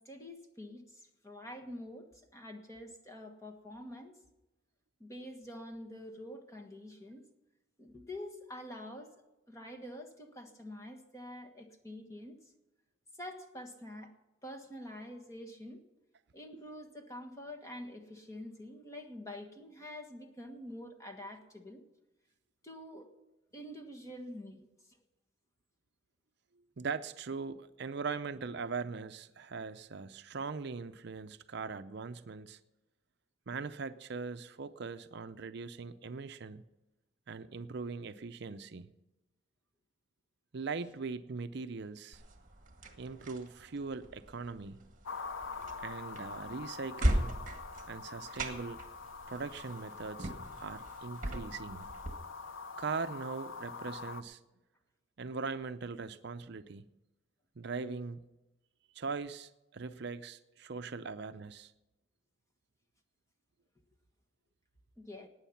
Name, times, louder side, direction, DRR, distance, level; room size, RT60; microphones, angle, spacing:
voice 1, 0.0-4.2 5.0-7.2 7.8-9.1 9.5-12.4 13.2-14.1 14.4-15.8 16.3-21.8 22.6-23.1 23.5-24.6 65.0-65.3, left 1 dB, 15° left, 5 dB, 1.4 m, -46 dB
voice 2, 26.8-32.6 33.5-36.6 37.3-38.9 40.5-42.2 43.0-44.8 45.8-47.3 47.9-48.8 49.3-51.9 52.8-54.4 55.2-56.9 57.6-58.2 58.9-61.7, right 4 dB, 55° right, 10 dB, 0.5 m, -40 dB
sound 1, 42.1-52.1, right 1 dB, 40° right, 1.9 m, -38 dB
sound 2, 45.0-54.2, left 4 dB, 70° left, 0.7 m, -45 dB
19.0 x 9.2 x 5.7 m, 1.0 s
head